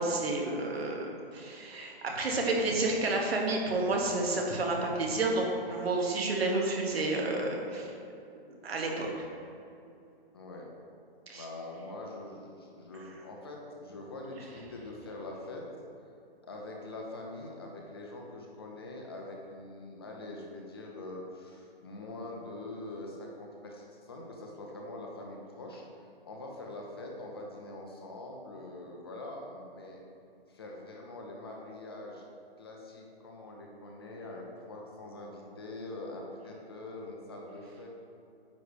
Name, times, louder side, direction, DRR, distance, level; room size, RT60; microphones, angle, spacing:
voice 1, 0.0-7.9 8.6-9.2 11.3-11.4, right 2 dB, 85° right, 0 dB, 1.7 m, -30 dB
voice 2, 10.3-10.7 11.3-15.6 16.4-30.0 30.5-32.2 32.6-37.9, left 2 dB, 25° left, -1 dB, 0.7 m, -44 dB
9.3 x 3.2 x 6.7 m, 2.6 s
hypercardioid pair, 175°, 30 cm